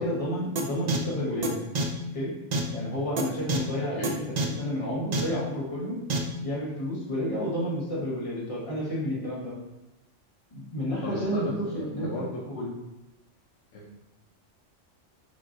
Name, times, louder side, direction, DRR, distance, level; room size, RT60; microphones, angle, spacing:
voice 1, 0.0-1.6 2.1-2.3 2.7-4.2 4.6-6.0 6.4-9.5 10.5-12.7, equal, 30° left, -6 dB, 1.3 m, -31 dB
sound 1, 0.6-0.7 0.9-1.0 1.4-1.5 1.8-1.9 2.5-2.6 3.2-3.3 3.5-3.6 4.0-4.1 4.4-4.5 5.1-5.2 6.1-6.2, right 3 dB, 50° right, 0.5 m, -25 dB
voice 2, 11.0-12.4 13.7-14.0, left 1 dB, 70° left, -3 dB, 1.0 m, -36 dB
6.8 x 2.8 x 2.6 m, 0.98 s
omnidirectional pair, 1.3 m